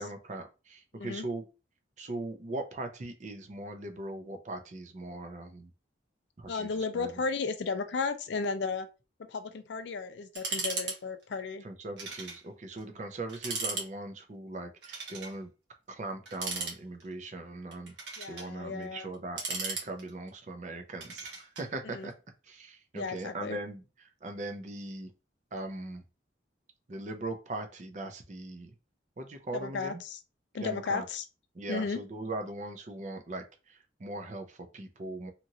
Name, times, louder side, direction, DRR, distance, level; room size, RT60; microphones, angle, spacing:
voice 1, 0.0-1.4 2.0-5.7 6.4-6.7 6.9-7.1 11.6-15.5 15.9-17.9 18.3-22.1 22.4-23.8 24.2-25.1 25.5-26.0 26.9-28.7 29.2-30.0 30.6-31.0 31.5-35.3, right 2 dB, 40° right, 0.5 m, -40 dB
voice 2, 0.9-1.3 6.5-8.9 9.2-11.6 18.2-19.1 21.8-22.1 22.9-23.6 29.5-30.2 30.5-31.2 31.7-32.0, left 4 dB, 75° left, 0.4 m, -34 dB
sound 1, 10.4-11.0 11.2-11.3 12.0-12.4 12.8-12.9 13.3-13.9 14.8-15.4 16.3-17.1 17.7-18.5 19.1-20.3 21.0-21.7, right 3 dB, 75° right, 1.0 m, -36 dB
2.9 x 2.5 x 2.7 m
head